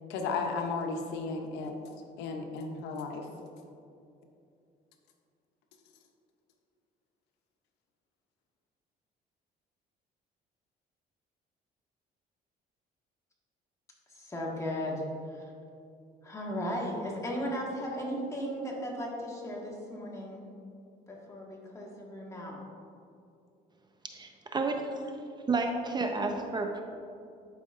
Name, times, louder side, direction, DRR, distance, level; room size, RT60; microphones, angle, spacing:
voice 1, 0.1-1.7 2.2-3.3, left 4 dB, 90° left, 4 dB, 0.8 m, -34 dB
voice 2, 14.1-15.0 15.3-15.4 16.2-20.5 21.1-22.6, equal, 15° left, -2 dB, 1.5 m, -36 dB
voice 3, 24.1-25.1 25.5-26.8, right 3 dB, 25° right, 4 dB, 0.6 m, -31 dB
11.5 x 5.1 x 2.5 m, 2.6 s
cardioid pair, 110°, 17 cm